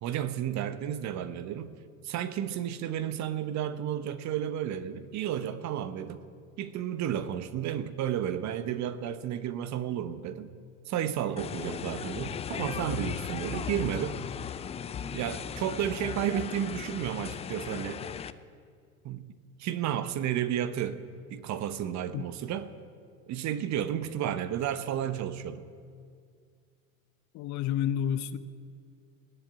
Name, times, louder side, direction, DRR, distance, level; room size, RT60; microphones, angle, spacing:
voice 1, 0.0-1.7 2.0-6.2 6.6-10.5 10.9-14.2 15.1-18.0 19.0-19.3 19.6-21.0 21.3-22.7 23.3-25.6, right 10 dB, 40° right, 12 dB, 0.9 m, -32 dB
sound 1, 11.4-18.3, left 8 dB, 15° left, 0.4 m, -37 dB
voice 2, 27.3-28.4, left 10 dB, 45° left, 14 dB, 0.7 m, -29 dB
19.5 x 7.5 x 8.2 m, 2.2 s
hypercardioid pair, 80°, 42 cm